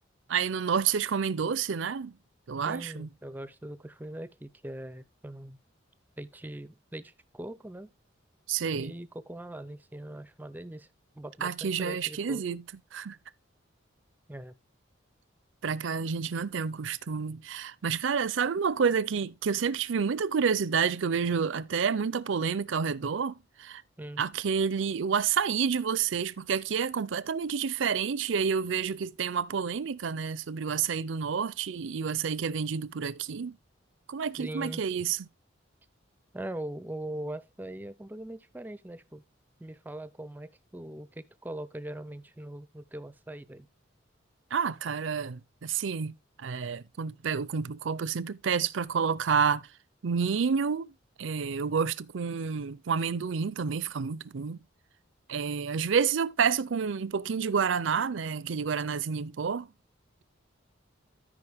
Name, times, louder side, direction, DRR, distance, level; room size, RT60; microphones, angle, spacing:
voice 1, 0.3-2.2 2.5-3.1 8.5-8.9 11.4-12.6 12.9-13.2 15.6-23.8 24.2-33.6 34.1-35.3 44.5-49.7 50.0-50.9 51.2-54.6 55.3-59.7, right 6 dB, 70° right, 0.5 m, -29 dB
voice 2, 2.6-5.6 6.2-7.9 8.8-10.9 11.2-12.4 14.3-14.6 24.0-24.2 34.4-34.8 36.3-39.2 39.6-43.7, right 1 dB, 10° right, 0.4 m, -41 dB
13.0 x 5.1 x 3.5 m
head